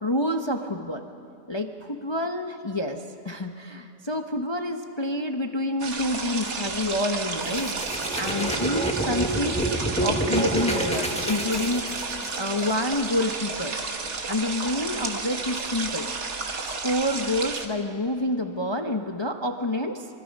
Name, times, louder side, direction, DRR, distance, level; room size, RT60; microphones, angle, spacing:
voice 1, 0.0-1.0 1.5-1.7 2.0-7.7 8.2-11.8 12.4-13.8 14.3-16.1 16.6-20.1, left 1 dB, 25° left, 5 dB, 0.6 m, -28 dB
sound 1, 5.8-17.7, right 4 dB, 45° right, 1.7 m, -32 dB
sound 2, 7.4-12.4, right 1 dB, 5° left, 1.1 m, -28 dB
24.5 x 24.0 x 5.3 m, 2.7 s
omnidirectional pair, 1.7 m